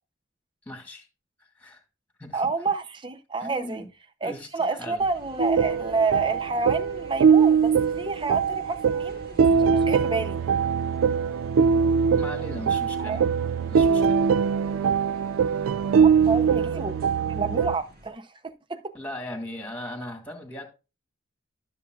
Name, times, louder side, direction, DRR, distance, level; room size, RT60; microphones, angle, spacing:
voice 1, 0.7-1.1 1.6-1.8 2.2-2.4 3.4-3.9 4.2-5.0 12.2-13.2 13.7-14.2 18.9-20.6, left 1 dB, 10° left, 2.1 m, -38 dB
voice 2, 2.3-3.8 4.2-10.4 13.0-13.2 16.0-17.0 17.3-18.8, right 4 dB, 25° right, 0.6 m, -29 dB
sound 1, 5.0-18.1, right 1 dB, 45° right, 2.0 m, -49 dB
sound 2, 5.4-17.8, right 6 dB, 80° right, 0.3 m, -22 dB
12.5 x 7.1 x 2.4 m
head